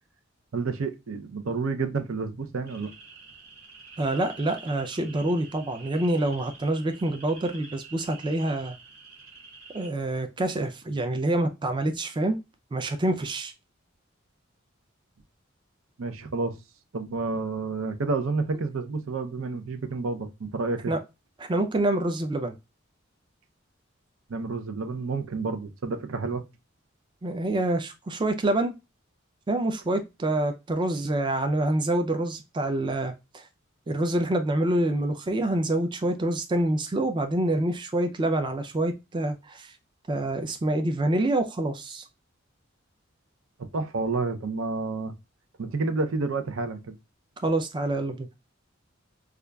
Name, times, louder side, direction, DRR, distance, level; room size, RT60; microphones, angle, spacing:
voice 1, 0.5-2.9 16.0-16.6 16.9-20.9 24.3-26.4 43.6-45.1 45.6-46.9, right 3 dB, 80° right, 0.6 m, -30 dB
sound 1, 2.7-9.9, right 4 dB, 45° right, 1.8 m, -47 dB
voice 2, 4.0-8.8 9.7-12.4 12.7-13.5 20.9-21.0 21.4-22.5 27.2-28.7 29.5-33.5 33.9-39.7 40.1-42.0 47.4-48.3, right 1 dB, 25° right, 0.4 m, -26 dB
4.9 x 2.3 x 2.2 m
head